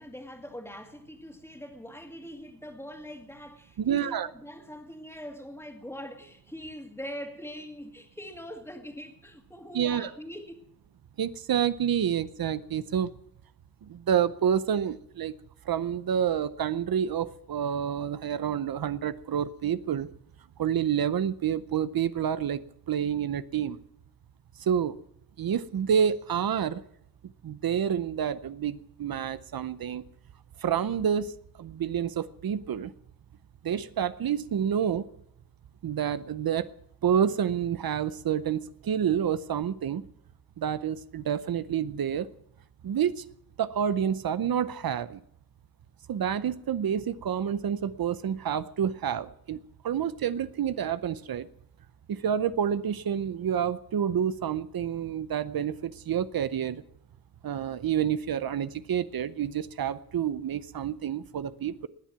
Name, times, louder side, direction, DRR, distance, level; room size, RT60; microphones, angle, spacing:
voice 1, 0.0-10.6, equal, 5° left, 2.2 m, -42 dB
voice 2, 3.8-4.3 9.7-10.1 11.2-13.1 13.9-15.3 15.7-20.1 20.6-22.6 22.9-23.8 24.6-25.0 25.4-26.8 27.4-30.0 30.6-32.9 33.6-35.1 35.8-36.7 37.0-40.0 40.6-42.3 42.8-43.2 43.6-45.2 46.1-49.6 49.8-51.5 52.1-56.8 57.4-61.9, right 8 dB, 85° right, 0.7 m, -28 dB
20.0 x 7.4 x 9.2 m
wide cardioid pair, 110°, 35 cm